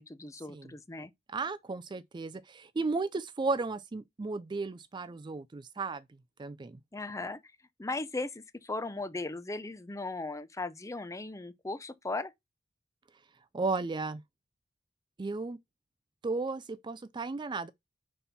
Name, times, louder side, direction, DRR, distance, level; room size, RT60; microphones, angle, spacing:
voice 1, 0.0-1.1 6.9-7.4 7.8-12.3, left 2 dB, 15° left, 0.6 m, -37 dB
voice 2, 1.3-6.0 6.4-6.8 13.5-14.2 15.2-15.6 16.2-17.7, right 3 dB, 25° right, 0.4 m, -34 dB
5.4 x 4.2 x 5.7 m
head